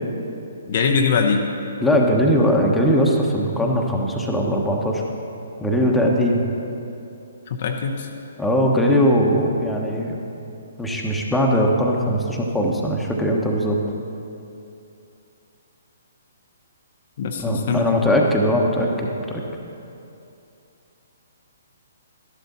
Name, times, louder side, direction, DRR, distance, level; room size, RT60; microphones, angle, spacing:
voice 1, 0.7-1.4 7.5-8.1 17.2-17.8, left 5 dB, 45° left, 3 dB, 0.8 m, -22 dB
voice 2, 1.8-5.0 5.6-6.5 8.4-10.2 10.8-13.8 17.4-19.4, equal, 5° left, -2 dB, 1.2 m, -20 dB
13.0 x 11.5 x 4.2 m, 2.7 s
figure-of-eight pair, 130°, 0 cm